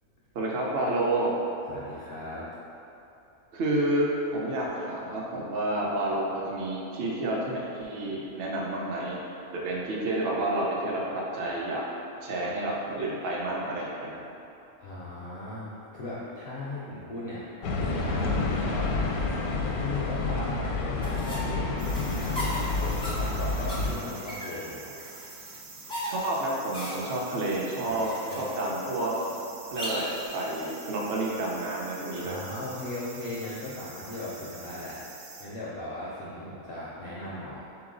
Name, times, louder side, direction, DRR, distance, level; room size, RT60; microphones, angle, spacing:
voice 1, 0.3-1.3 3.5-4.1 4.3-9.2 9.5-11.8 12.2-14.2 26.0-28.1 28.4-29.1 29.7-32.4, right 1 dB, 55° right, -4 dB, 0.7 m, -30 dB
voice 2, 1.7-2.5 14.8-18.9 19.6-25.0 27.8-28.0 28.3-28.4 32.2-37.8, left 1 dB, 70° left, -7 dB, 0.5 m, -38 dB
sound 1, 17.6-23.9, left 3 dB, 85° left, 1.1 m, -29 dB
sound 2, 21.0-30.3, equal, 5° left, 0.4 m, -38 dB
sound 3, 21.8-35.5, right 4 dB, 80° right, 1.1 m, -46 dB
3.8 x 3.0 x 3.7 m, 2.8 s
omnidirectional pair, 1.6 m